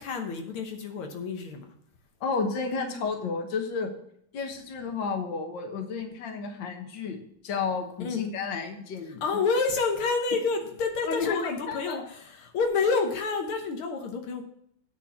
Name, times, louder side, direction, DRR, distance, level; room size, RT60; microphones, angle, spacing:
voice 1, 0.0-1.7 8.0-8.2 9.2-14.4, left 4 dB, 80° left, 3 dB, 1.9 m, -28 dB
voice 2, 2.2-3.9 4.3-9.2 11.0-12.1, left 5 dB, 60° left, 4 dB, 1.9 m, -32 dB
9.9 x 4.6 x 7.1 m, 0.70 s
omnidirectional pair, 2.3 m